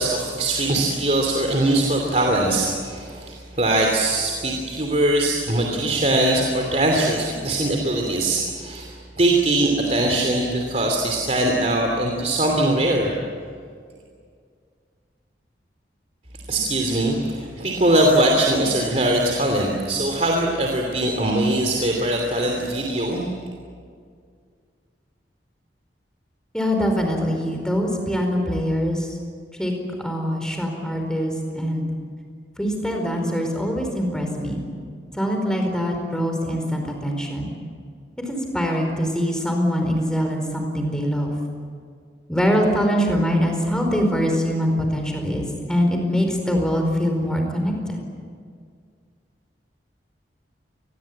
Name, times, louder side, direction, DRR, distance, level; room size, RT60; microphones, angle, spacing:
voice 1, 0.0-13.1 16.5-23.2, right 1 dB, 40° right, 1 dB, 2.9 m, -21 dB
voice 2, 26.5-29.1 29.6-29.7 30.0-31.9 32.6-34.6 35.1-37.5 38.2-41.3 42.3-48.0, equal, 5° left, 3 dB, 4.6 m, -23 dB
27.5 x 21.0 x 8.7 m, 2.1 s
head